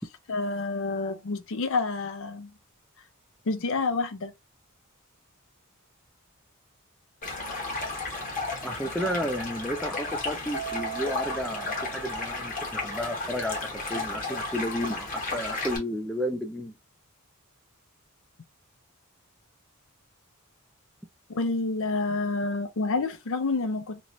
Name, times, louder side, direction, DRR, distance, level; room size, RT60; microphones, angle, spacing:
voice 1, 0.3-2.5 3.5-4.3 21.3-24.0, left 3 dB, 65° left, 0.6 m, -28 dB
Stream, 7.2-15.8, left 3 dB, 40° left, 1.3 m, -33 dB
voice 2, 8.6-16.7, equal, 5° left, 0.5 m, -32 dB
Mallet percussion, 10.5-13.0, right 10 dB, 75° right, 0.4 m, -40 dB
3.0 x 2.9 x 2.6 m
head